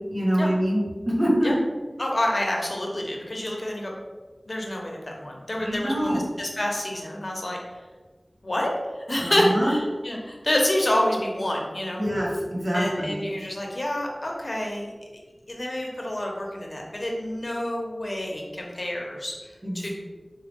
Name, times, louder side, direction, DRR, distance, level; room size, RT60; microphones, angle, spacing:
voice 1, 0.1-0.8 1.1-1.5 5.6-6.2 9.2-9.7 12.0-13.1 19.6-19.9, equal, 65° right, -6 dB, 1.3 m, -25 dB
voice 2, 2.0-3.9 4.5-7.6 8.4-8.7 8.9-12.0 12.7-14.9 15.5-19.9, left 1 dB, 60° left, -1 dB, 0.8 m, -28 dB
4.7 x 2.3 x 3.5 m, 1.3 s
wide cardioid pair, 45°, 0 cm